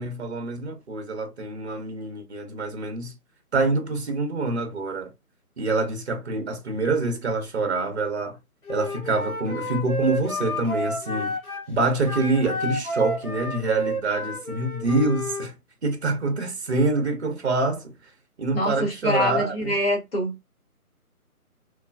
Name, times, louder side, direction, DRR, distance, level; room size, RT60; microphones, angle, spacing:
voice 1, 0.0-3.1 3.5-5.1 5.6-8.4 8.7-11.3 11.7-15.5 15.8-17.9 18.4-19.7, right 3 dB, 45° right, 0.7 m, -26 dB
Wind instrument woodwind instrument, 8.7-11.7 12.0-15.5, equal, 70° left, 1.1 m, -31 dB
voice 2, 18.5-20.5, left 1 dB, 40° left, 1.0 m, -25 dB
3.1 x 2.2 x 2.4 m
figure-of-eight pair, 155°, 45 cm